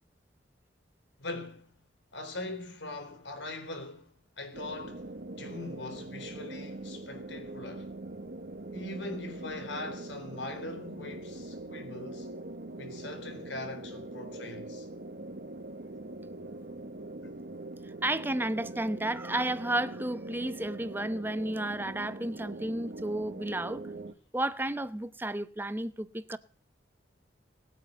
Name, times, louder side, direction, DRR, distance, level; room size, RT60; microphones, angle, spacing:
voice 1, 1.2-1.7 2.1-7.9 8.7-12.3 12.8-14.9 18.7-18.8, left 2 dB, 85° left, 4.1 m, -41 dB
sound 1, 4.5-24.1, right 2 dB, 55° right, 1.2 m, -42 dB
voice 2, 18.0-23.8 24.3-26.4, right 1 dB, 10° right, 0.8 m, -32 dB
19.5 x 9.1 x 8.0 m
head